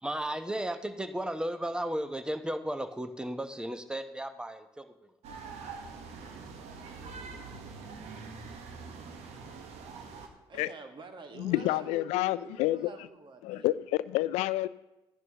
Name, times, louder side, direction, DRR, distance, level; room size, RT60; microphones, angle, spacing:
voice 1, 0.0-5.1, right 1 dB, 5° right, 9 dB, 0.9 m, -34 dB
sound 1, 5.2-10.3, right 4 dB, 65° right, 1.3 m, -44 dB
voice 2, 10.5-13.7, right 3 dB, 45° right, 6 dB, 1.6 m, -47 dB
voice 3, 11.4-12.9 13.4-14.7, left 17 dB, 75° left, 18 dB, 0.4 m, -28 dB
14.0 x 10.5 x 2.9 m, 0.96 s
hypercardioid pair, 50°, 12 cm